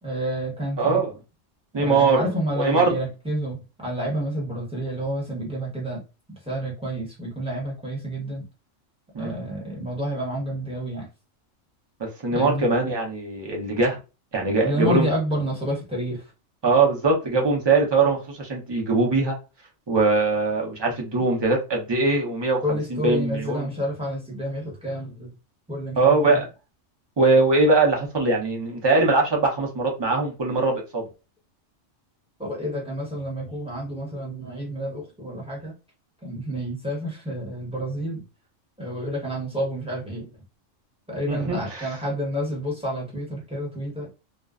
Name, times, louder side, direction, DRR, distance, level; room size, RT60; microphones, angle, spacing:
voice 1, 0.0-1.0 1.7-6.0 6.3-8.5 9.2-11.1 12.3-12.7 14.6-16.3 22.6-25.3 25.7-26.4 32.4-35.8 36.2-38.2 38.8-40.3 41.1-44.1, equal, 5° right, 0.9 m, -29 dB
voice 2, 0.8-1.1 1.7-2.3 2.6-2.9 9.1-9.3 12.0-14.0 14.3-15.1 16.6-19.3 19.9-22.6 22.9-23.7 26.0-26.4 27.2-31.0 41.3-41.9, right 3 dB, 30° right, 0.5 m, -21 dB
2.4 x 2.1 x 2.4 m
omnidirectional pair, 1.3 m